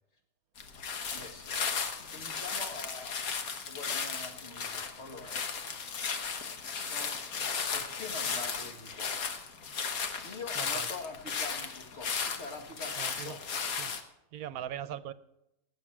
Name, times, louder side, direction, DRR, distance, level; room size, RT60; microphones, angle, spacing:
sound 1, 0.6-14.0, left 6 dB, 75° left, 1.7 m, -35 dB
voice 1, 1.1-1.6 2.0-3.4 3.6-5.5 6.7-7.1 7.7-9.4 10.2-13.7, left 3 dB, 50° left, 3 dB, 2.1 m, -45 dB
voice 2, 10.6-10.9 13.0-13.4 13.8-13.9 14.3-15.1, right 10 dB, 85° right, 15 dB, 1.1 m, -40 dB
19.0 x 7.8 x 6.0 m, 0.87 s
omnidirectional pair, 1.5 m